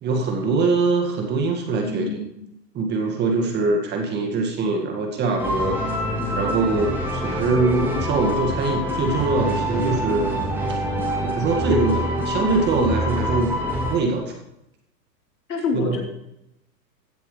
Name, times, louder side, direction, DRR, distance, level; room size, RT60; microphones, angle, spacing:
voice 1, 0.0-2.2 2.7-6.0 6.4-10.4 10.7-10.8 11.2-13.6 13.9-14.3 15.7-16.0, right 3 dB, 20° right, 3 dB, 2.0 m, -23 dB
voice 2, 1.7-2.3 15.5-16.0, left 4 dB, 75° left, 0 dB, 4.3 m, -27 dB
sound 1, 5.4-14.0, equal, 5° right, 2.8 m, -25 dB
16.0 x 10.5 x 3.4 m, 0.81 s
hypercardioid pair, 135°, 50 cm